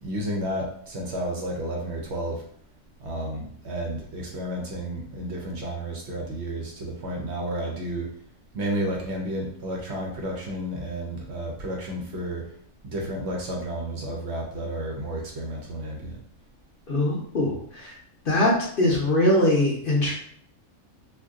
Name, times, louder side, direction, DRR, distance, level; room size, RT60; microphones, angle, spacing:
voice 1, 0.0-2.4 3.0-8.1 8.5-12.5 12.8-16.2, right 1 dB, 60° right, -1 dB, 0.9 m, -31 dB
voice 2, 16.9-17.9 18.3-18.5 18.8-20.1, left 1 dB, 50° left, -3 dB, 0.8 m, -22 dB
2.5 x 2.5 x 3.6 m, 0.62 s
omnidirectional pair, 1.4 m